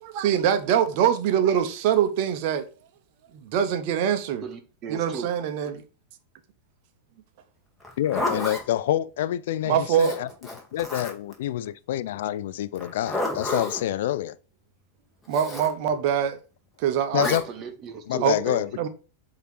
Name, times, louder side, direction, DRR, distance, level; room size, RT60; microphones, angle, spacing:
voice 1, 0.0-2.7 3.3-4.4 4.9-5.8 9.7-10.1 15.3-16.4 16.8-17.3 18.2-18.4 18.8-18.9, right 9 dB, 45° right, 0.7 m, -23 dB
voice 2, 4.4-5.4 17.2-18.8, right 4 dB, 30° right, 1.2 m, -36 dB
Zipper (clothing), 7.8-8.6 9.9-11.3 12.8-13.8 15.3-15.7 17.2-17.4, left 2 dB, 10° left, 1.7 m, -30 dB
voice 3, 8.0-10.3 10.7-14.4 17.1-17.4 18.1-18.7, left 12 dB, 55° left, 0.3 m, -27 dB
7.9 x 2.9 x 4.5 m
figure-of-eight pair, 90°, 0 cm